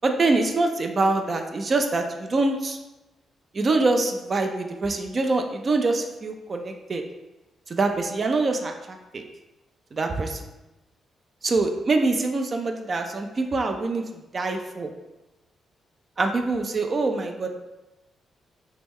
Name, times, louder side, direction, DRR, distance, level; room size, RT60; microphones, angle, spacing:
voice 1, 0.0-2.8 3.5-7.0 7.7-9.2 9.9-10.4 11.4-14.0 14.3-14.9 16.2-17.5, right 3 dB, 45° right, 4 dB, 0.4 m, -24 dB
2.9 x 2.2 x 3.4 m, 1.0 s
supercardioid pair, 50°, 0 cm